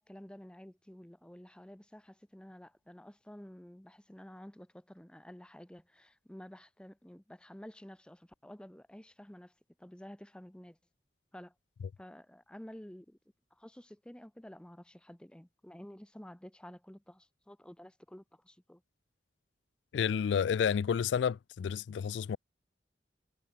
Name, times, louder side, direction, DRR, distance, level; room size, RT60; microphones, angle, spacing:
voice 1, 0.0-9.5 9.8-10.8 11.3-11.5 12.0-13.2 13.5-18.8, equal, 5° left, 0.7 m, -51 dB
voice 2, 19.9-22.4, left 7 dB, 85° left, 0.3 m, -30 dB
head